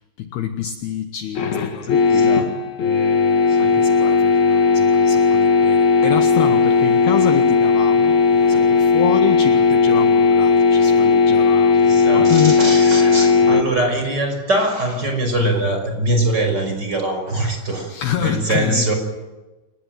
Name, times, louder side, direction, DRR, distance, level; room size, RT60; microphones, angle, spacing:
voice 1, 0.2-2.4 2.8-13.0 13.4-13.6 17.9-18.9, left 10 dB, 70° left, 8 dB, 2.7 m, -27 dB
sound 1, 1.3-13.6, left 5 dB, 50° left, 2.6 m, -15 dB
Drawer open or close, 6.5-7.4 8.1-8.9 10.7-11.2 12.0-13.5 15.4-15.8 16.5-16.6 17.3-17.8, right 1 dB, 85° right, 10.0 m, -39 dB
voice 2, 11.8-18.9, right 1 dB, 20° right, 4 dB, 5.9 m, -22 dB
28.5 x 19.5 x 9.2 m, 1.1 s
omnidirectional pair, 5.6 m